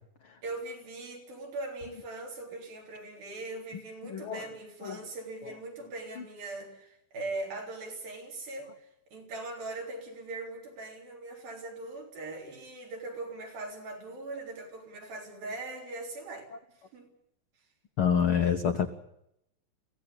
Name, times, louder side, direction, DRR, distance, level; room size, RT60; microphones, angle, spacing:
voice 1, 0.4-17.1, right 2 dB, 80° right, 1 dB, 5.5 m, -40 dB
voice 2, 4.1-4.5 4.8-5.0 18.0-18.9, left 7 dB, 80° left, 6 dB, 1.2 m, -26 dB
23.0 x 16.0 x 8.6 m, 0.79 s
omnidirectional pair, 4.1 m